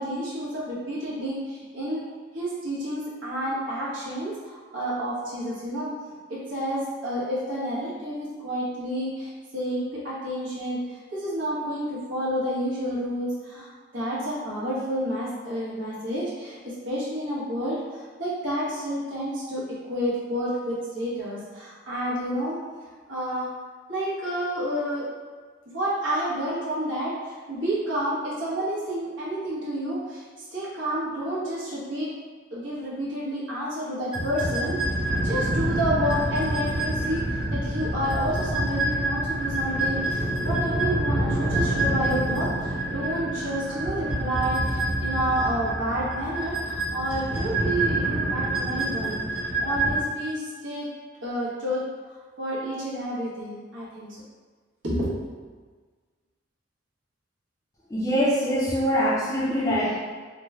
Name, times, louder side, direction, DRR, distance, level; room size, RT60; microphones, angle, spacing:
voice 1, 0.0-2.0 2.3-5.9 6.3-22.6 23.1-23.5 23.9-25.1 25.7-32.1 32.5-49.2 49.6-50.9 51.2-51.8 52.4-54.2 54.8-55.3, equal, 75° right, -8 dB, 1.1 m, -30 dB
sound 1, 34.1-50.0, right 1 dB, 30° right, 0.9 m, -27 dB
voice 2, 57.9-60.0, equal, 15° left, -9 dB, 0.5 m, -23 dB
3.0 x 2.1 x 3.4 m, 1.5 s
head